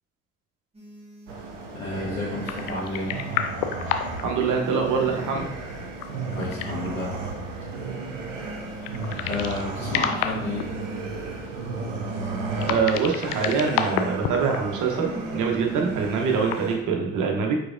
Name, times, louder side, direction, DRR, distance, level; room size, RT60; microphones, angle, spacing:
sound 1, 0.7-1.4 2.3-3.4 4.3-5.4 6.3-7.4 8.4-9.4 10.0-11.1 12.0-13.1 15.0-16.1, right 2 dB, 15° right, 1.6 m, -40 dB
sound 2, 1.3-16.8, right 3 dB, 90° right, 0.5 m, -34 dB
voice 1, 1.7-3.1 6.1-7.1 9.3-10.6, left 1 dB, 80° left, -9 dB, 1.4 m, -31 dB
sound 3, 2.5-4.2 4.5-4.6 5.7-6.9 8.8-9.6 9.9-10.6 12.6-14.6 14.8-14.9 16.3-16.6, left 9 dB, 65° left, 0.5 m, -29 dB
voice 2, 4.2-5.5 12.6-17.6, right 5 dB, 55° right, 2 dB, 1.0 m, -24 dB
4.9 x 4.0 x 2.5 m, 0.82 s
figure-of-eight pair, 45°, 36 cm